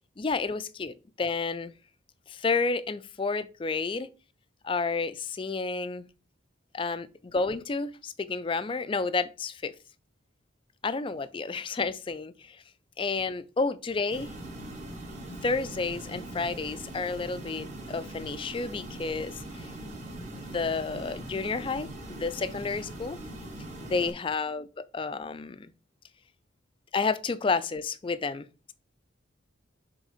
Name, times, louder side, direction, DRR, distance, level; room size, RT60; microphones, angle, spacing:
voice 1, 0.2-1.7 2.3-4.1 4.6-6.1 6.7-9.7 10.8-12.6 13.0-14.3 15.4-19.7 20.3-23.2 23.8-24.7 24.9-25.7 26.9-28.7, left 4 dB, 25° left, 0.3 m, -31 dB
sound 1, 14.1-24.1, right 1 dB, 35° right, 1.6 m, -41 dB
6.5 x 3.5 x 4.9 m
head